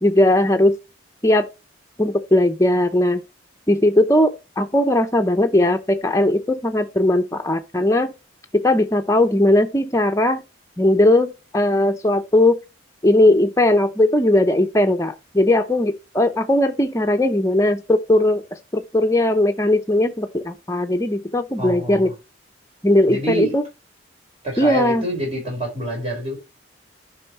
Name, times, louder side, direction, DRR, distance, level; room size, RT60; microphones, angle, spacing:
voice 1, 0.0-0.8 1.2-1.5 2.0-3.2 3.7-8.1 8.5-10.4 10.8-12.6 13.0-18.4 18.7-22.1 22.8-23.6 24.6-25.0, left 1 dB, 15° left, 0.7 m, -18 dB
voice 2, 21.6-22.1 23.1-23.5 24.4-26.4, right 2 dB, 30° right, 4.7 m, -26 dB
10.5 x 5.6 x 3.2 m
head